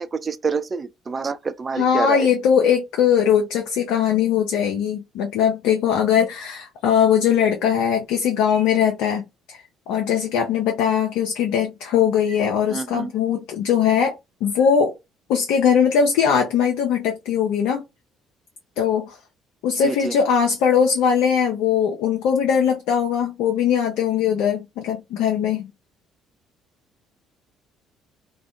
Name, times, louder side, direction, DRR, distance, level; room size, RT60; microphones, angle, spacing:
voice 1, 0.0-2.3 12.7-13.1 19.8-20.2, right 5 dB, 35° right, 0.3 m, -27 dB
voice 2, 1.8-9.6 9.9-14.1 14.4-14.9 15.3-17.8 18.8-19.2 19.6-25.7, left 8 dB, 70° left, 0.4 m, -20 dB
2.5 x 2.2 x 2.3 m
hypercardioid pair, 55°, 0 cm